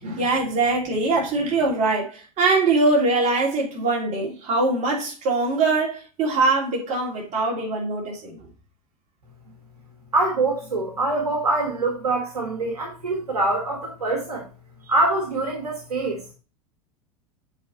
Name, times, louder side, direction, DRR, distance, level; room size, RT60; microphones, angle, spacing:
voice 1, 0.0-8.3, right 3 dB, 35° right, 3.1 m, -22 dB
voice 2, 10.1-14.5 14.9-16.2, right 2 dB, 75° right, 1.7 m, -24 dB
7.7 x 4.3 x 4.1 m
figure-of-eight pair, 85°, 20 cm